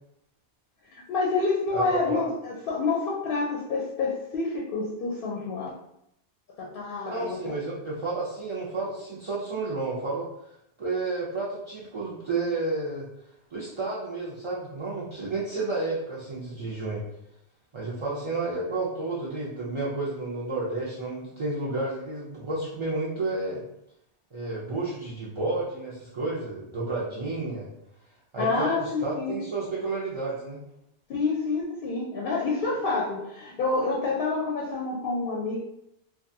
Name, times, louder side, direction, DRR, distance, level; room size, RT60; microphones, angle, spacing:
voice 1, 0.9-5.7 6.6-7.4 28.4-29.4 31.1-35.6, left 3 dB, 60° left, -3 dB, 0.7 m, -28 dB
voice 2, 1.7-2.3 7.0-10.3 10.8-13.1 13.5-17.0 17.7-23.6 24.3-27.7 28.3-30.6, right 3 dB, 50° right, -8 dB, 0.3 m, -31 dB
2.6 x 2.3 x 2.6 m, 0.80 s
omnidirectional pair, 1.2 m